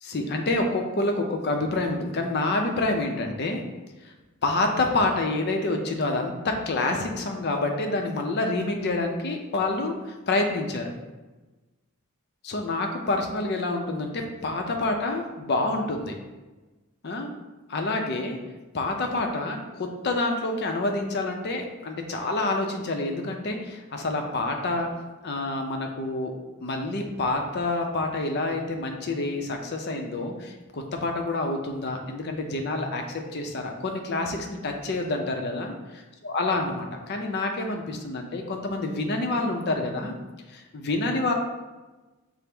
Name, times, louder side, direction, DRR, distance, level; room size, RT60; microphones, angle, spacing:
voice 1, 0.0-3.6 4.0-4.1 4.4-10.9 12.5-16.2 17.0-17.3 17.7-18.4 18.7-24.9 25.2-26.3 26.6-35.7 36.2-40.1 40.5-41.3, left 2 dB, 45° left, 3 dB, 0.5 m, -27 dB
5.8 x 2.0 x 3.3 m, 1.2 s
head